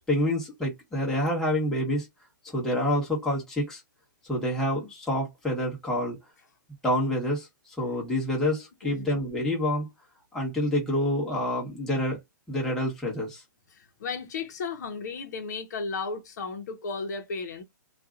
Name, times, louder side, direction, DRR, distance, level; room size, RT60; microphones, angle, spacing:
voice 1, 0.1-2.1 2.4-3.8 4.3-6.2 6.8-7.5 7.8-9.9 10.3-12.2 12.5-13.4, left 1 dB, 5° left, 1.2 m, -27 dB
voice 2, 13.7-17.6, left 4 dB, 55° left, 0.9 m, -34 dB
2.8 x 2.5 x 2.4 m
hypercardioid pair, 155°, 11 cm